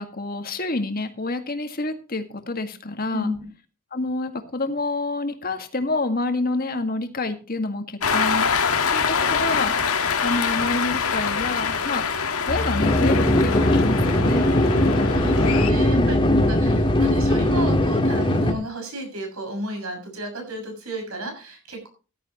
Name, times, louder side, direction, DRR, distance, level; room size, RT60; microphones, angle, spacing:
voice 1, 0.0-3.3 3.9-8.5 8.9-9.7 10.2-12.0 12.5-14.5 15.7-16.1, left 2 dB, 40° left, 6 dB, 1.9 m, -28 dB
voice 2, 3.1-3.4 15.1-16.2 16.5-21.9, right 1 dB, 80° right, 4 dB, 6.6 m, -32 dB
Cheering, 8.0-15.7, left 6 dB, 80° left, 1.7 m, -24 dB
sound 1, 12.5-17.8, equal, 30° right, 6.3 m, -28 dB
sound 2, 12.8-18.5, left 1 dB, 25° left, 1.8 m, -20 dB
15.0 x 12.0 x 3.0 m, 0.34 s
head